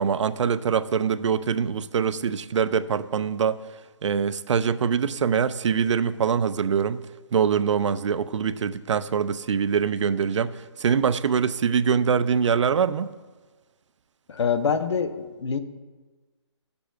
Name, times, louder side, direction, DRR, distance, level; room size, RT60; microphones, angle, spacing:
voice 1, 0.0-3.6 4.0-7.0 7.3-13.1, right 7 dB, 75° right, 14 dB, 0.4 m, -24 dB
voice 2, 14.3-15.6, left 6 dB, 65° left, 10 dB, 0.7 m, -25 dB
13.5 x 6.8 x 2.4 m, 1.3 s
hypercardioid pair, 165°, 16 cm